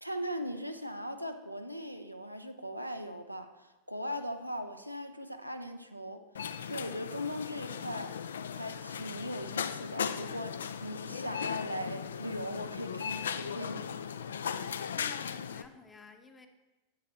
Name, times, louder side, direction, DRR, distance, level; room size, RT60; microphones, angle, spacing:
voice 1, 0.0-6.2 6.7-8.1 8.5-14.0, equal, 90° right, 6 dB, 0.5 m, -39 dB
sound 1, 6.3-15.6, left 7 dB, 65° left, 0.3 m, -37 dB
voice 2, 14.9-16.5, left 3 dB, 15° left, 7 dB, 0.8 m, -54 dB
8.4 x 8.3 x 3.1 m, 1.1 s
figure-of-eight pair, 90°, 0 cm